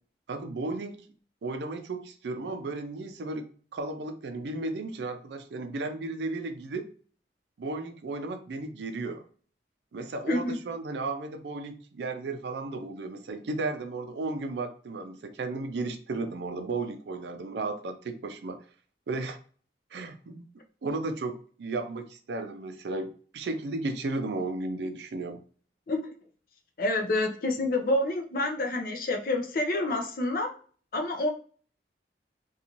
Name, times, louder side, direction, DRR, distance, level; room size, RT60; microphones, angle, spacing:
voice 1, 0.3-1.0 1.4-6.9 7.6-9.2 9.9-18.6 19.1-19.4 19.9-20.5 20.8-25.4, right 3 dB, 75° right, 7 dB, 0.4 m, -34 dB
voice 2, 10.3-10.6 25.9-26.2 26.8-30.5 30.9-31.3, left 2 dB, 50° left, 5 dB, 0.5 m, -28 dB
2.5 x 2.3 x 2.9 m, 0.43 s
head